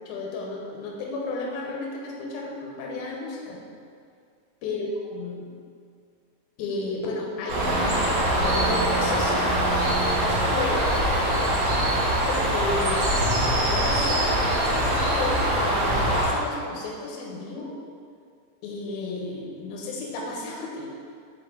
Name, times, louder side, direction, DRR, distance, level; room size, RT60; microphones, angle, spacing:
voice 1, 0.1-3.6 4.6-5.5 6.6-9.9 10.2-10.8 12.2-13.2 13.4-17.8 18.6-20.9, left 2 dB, 75° left, -2 dB, 2.4 m, -33 dB
Bird, 7.5-16.3, right 1 dB, 80° right, 1.6 m, -23 dB
6.8 x 4.9 x 3.8 m, 2.2 s
omnidirectional pair, 5.3 m